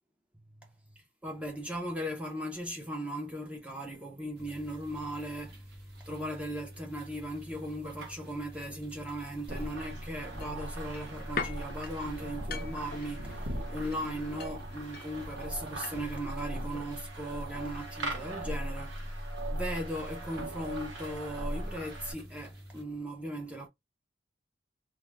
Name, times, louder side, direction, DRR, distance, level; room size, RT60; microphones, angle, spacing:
voice 1, 1.2-5.6 6.1-19.0 19.5-23.7, equal, 5° right, 0.5 m, -38 dB
sound 1, 4.4-22.8, equal, 55° right, 0.7 m, -49 dB
sound 2, 9.5-22.1, right 1 dB, 85° right, 0.8 m, -39 dB
sound 3, 10.4-16.2 16.5-16.6, left 5 dB, 50° left, 0.4 m, -43 dB
2.3 x 2.1 x 3.0 m
head